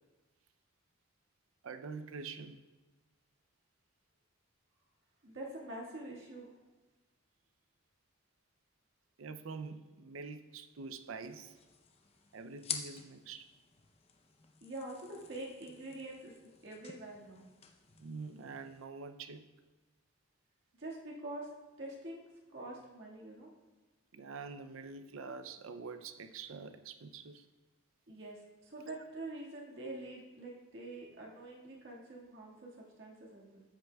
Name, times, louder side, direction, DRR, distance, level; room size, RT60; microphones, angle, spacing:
voice 1, 1.6-2.6 9.2-11.6 12.3-13.5 18.0-19.5 24.1-27.5, right 4 dB, 75° right, 9 dB, 0.5 m, -45 dB
voice 2, 5.2-6.5 14.6-17.5 20.8-22.2 22.5-23.5 28.1-33.6, right 2 dB, 60° right, -3 dB, 1.8 m, -46 dB
sound 1, 11.2-18.8, left 7 dB, 30° left, 0.6 m, -49 dB
13.5 x 8.2 x 2.3 m, 1.2 s
head